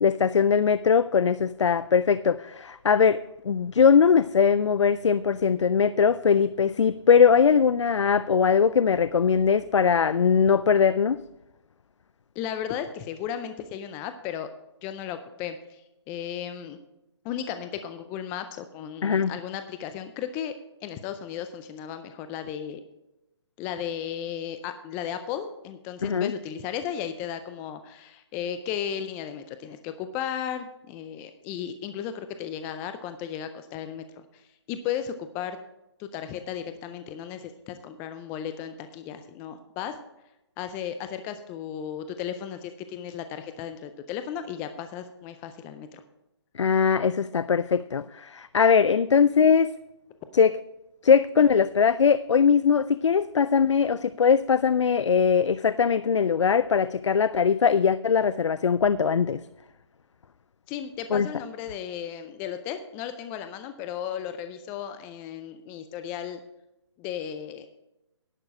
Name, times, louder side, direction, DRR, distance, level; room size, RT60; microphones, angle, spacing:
voice 1, 0.0-11.2 19.0-19.3 26.0-26.3 46.5-49.7 50.3-50.5 51.0-59.4 61.1-61.3, left 6 dB, 85° left, 16 dB, 0.4 m, -21 dB
voice 2, 12.4-14.5 14.8-16.8 17.2-20.5 20.8-22.8 23.6-35.6 36.0-40.0 40.6-46.0 60.7-66.4 67.0-67.7, left 9 dB, 15° left, 9 dB, 0.4 m, -35 dB
11.0 x 6.7 x 6.1 m, 0.90 s
hypercardioid pair, 145°, 15 cm